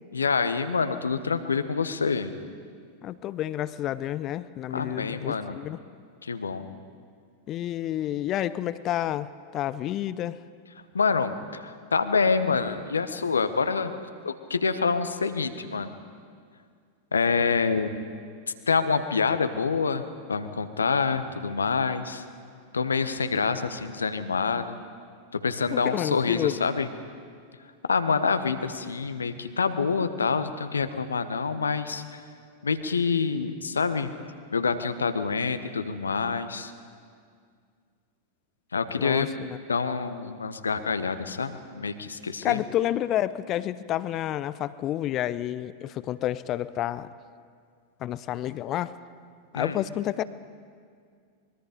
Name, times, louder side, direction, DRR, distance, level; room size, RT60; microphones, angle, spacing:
voice 1, 0.1-2.3 4.7-5.6 6.2-6.7 10.9-13.9 14.2-15.9 17.1-17.9 18.7-20.0 20.3-22.2 22.7-24.8 25.3-26.9 27.9-32.2 32.6-34.1 34.5-36.7 38.7-39.3 39.7-42.6 49.5-49.8, left 5 dB, 75° left, 10 dB, 1.2 m, -26 dB
voice 2, 3.0-5.8 7.5-10.4 25.7-26.6 39.0-39.6 42.4-47.1 48.0-49.0 49.5-50.2, left 12 dB, 35° left, 16 dB, 0.7 m, -29 dB
24.5 x 22.5 x 5.2 m, 2.1 s
figure-of-eight pair, 90°, 0 cm